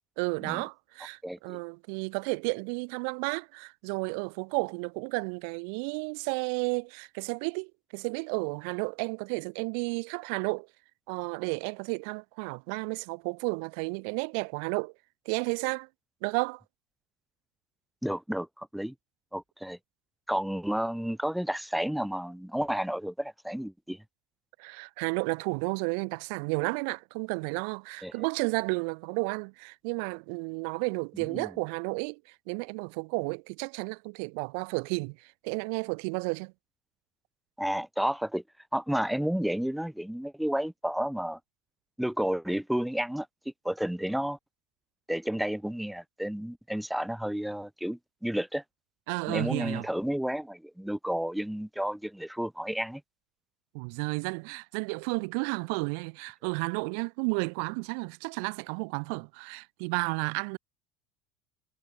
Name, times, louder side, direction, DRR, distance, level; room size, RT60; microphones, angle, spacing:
voice 1, 0.2-10.7 11.1-14.9 15.3-15.9 16.2-16.6 24.6-36.5 49.1-49.8 53.7-60.6, right 40 dB or more, 70° right, 0.8 m, -32 dB
voice 2, 1.2-1.6 18.0-18.9 19.3-19.8 20.3-24.0 28.0-28.1 31.3-31.5 37.6-38.4 38.7-41.4 42.0-44.4 45.1-48.6 49.3-53.0, equal, ahead, 1.1 m, -31 dB
cardioid pair, 165°, 0 cm